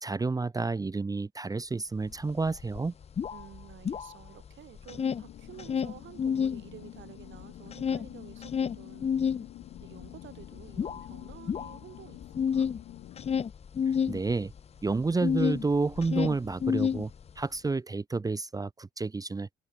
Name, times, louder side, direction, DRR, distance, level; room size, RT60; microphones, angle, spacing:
voice 1, 0.0-2.9 14.1-14.5 14.8-17.1 17.4-19.5, right 3 dB, 20° right, 0.6 m, -30 dB
sound 1, 2.1-2.2 2.5-4.5 4.8-6.6 7.0-15.6 15.9-17.5, left 7 dB, 30° left, 0.5 m, -30 dB
voice 2, 3.3-9.1 9.8-12.2 12.5-12.7, right 11 dB, 70° right, 3.8 m, -51 dB
sound 2, 4.9-13.5, left 15 dB, 80° left, 0.8 m, -48 dB
cardioid pair, 90°, 20 cm